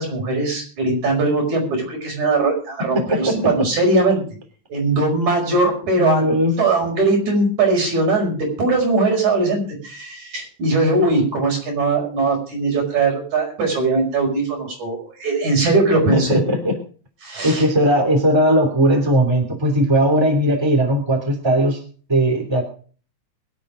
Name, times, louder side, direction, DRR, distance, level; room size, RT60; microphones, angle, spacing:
voice 1, 0.0-4.2 4.7-6.2 6.6-16.4 17.2-17.6, right 3 dB, 75° right, 0 dB, 6.6 m, -20 dB
voice 2, 2.9-3.4 6.0-6.6 16.1-16.8 17.4-21.8 22.1-22.6, equal, 10° right, 3 dB, 2.9 m, -18 dB
22.0 x 8.3 x 5.0 m, 0.41 s
omnidirectional pair, 3.4 m